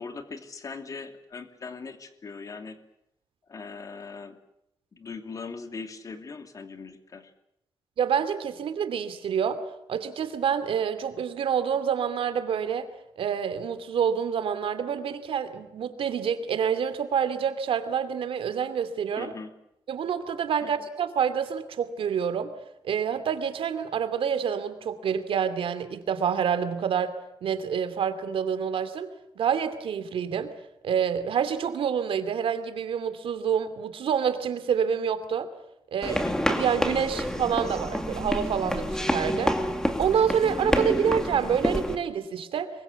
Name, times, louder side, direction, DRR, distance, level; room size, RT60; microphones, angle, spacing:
voice 1, 0.0-2.8 3.5-4.4 4.9-7.3 19.2-19.5 20.6-20.7 36.0-36.4, left 4 dB, 40° left, 7 dB, 2.7 m, -40 dB
voice 2, 8.0-9.6 9.9-19.3 19.9-22.5 22.8-27.2 27.4-29.1 29.4-30.5 30.8-35.5 35.9-36.2 36.5-39.6 40.0-42.7, right 7 dB, 85° right, 10 dB, 2.7 m, -27 dB
sound 1, 36.0-42.0, equal, 5° left, 2.3 m, -28 dB
25.5 x 23.5 x 8.2 m, 0.79 s
wide cardioid pair, 160°, 9 cm